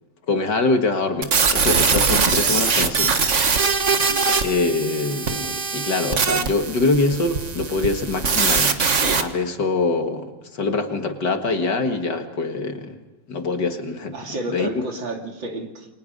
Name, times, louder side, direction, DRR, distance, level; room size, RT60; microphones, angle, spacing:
voice 1, 0.3-3.2 4.4-8.8 9.2-13.0 13.3-14.1 14.5-14.8, left 3 dB, 55° left, 5 dB, 2.4 m, -24 dB
sound 1, 1.2-9.2, right 5 dB, 40° right, 1.6 m, -21 dB
voice 2, 4.0-4.4 14.1-15.9, right 2 dB, 65° right, 2 dB, 3.5 m, -31 dB
29.0 x 23.0 x 5.4 m, 1.2 s
omnidirectional pair, 2.3 m